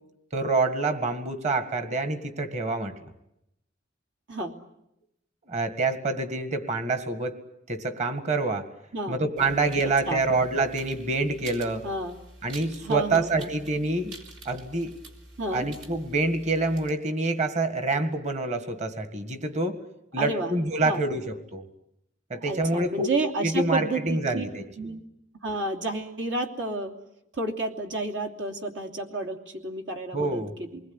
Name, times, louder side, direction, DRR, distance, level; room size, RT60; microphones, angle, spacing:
voice 1, 0.3-2.9 5.5-7.4 7.7-8.7 9.1-11.9 12.4-14.2 14.5-14.9 15.5-19.8 20.1-21.6 22.3-23.1 23.4-24.7 30.1-30.5, right 2 dB, 40° right, 9 dB, 1.9 m, -27 dB
voice 2, 8.9-9.5 10.0-10.2 11.8-12.2 12.8-13.5 15.4-15.7 20.2-20.5 20.8-21.0 22.3-24.4 24.8-25.0 25.4-26.9 27.3-30.8, right 2 dB, 85° right, 4 dB, 3.0 m, -31 dB
sound 1, 9.4-16.9, right 2 dB, 70° right, 3.7 m, -47 dB
28.0 x 21.0 x 9.7 m, 0.85 s
head